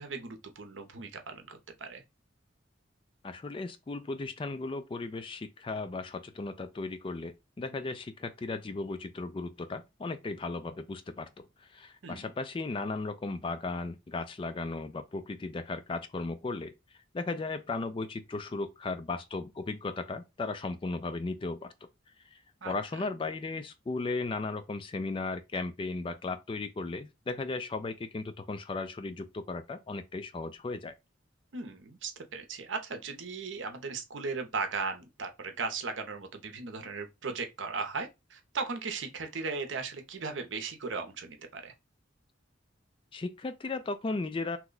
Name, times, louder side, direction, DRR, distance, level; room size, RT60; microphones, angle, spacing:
voice 1, 0.0-2.0 12.0-12.3 22.6-22.7 31.5-41.7, right 4 dB, 75° right, 0.7 m, -37 dB
voice 2, 3.2-16.7 17.1-21.7 22.3-30.9 43.1-44.6, left 3 dB, 25° left, 0.3 m, -36 dB
2.9 x 2.2 x 3.8 m
head